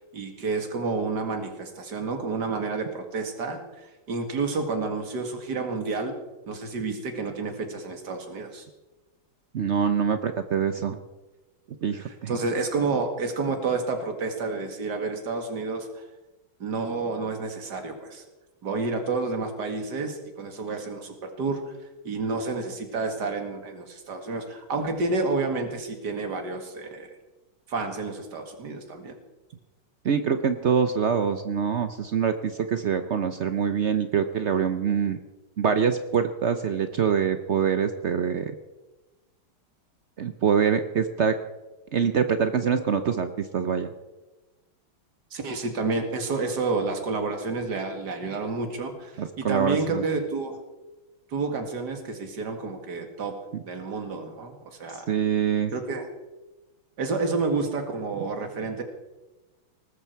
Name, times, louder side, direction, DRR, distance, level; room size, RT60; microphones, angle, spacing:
voice 1, 0.1-6.1 6.5-8.6 11.9-16.0 16.6-18.2 18.6-21.7 22.0-27.1 27.7-29.1 45.3-50.6 51.3-53.3 53.6-55.1 55.7-56.1 57.0-58.8, right 3 dB, 55° right, 5 dB, 2.6 m, -30 dB
voice 2, 9.5-11.0 11.8-12.4 30.0-35.2 35.6-38.5 40.2-41.4 41.9-43.9 49.2-50.0 53.5-53.6 54.9-55.7, right 7 dB, 85° right, 9 dB, 0.6 m, -25 dB
19.5 x 13.5 x 4.6 m, 1.1 s
omnidirectional pair, 2.3 m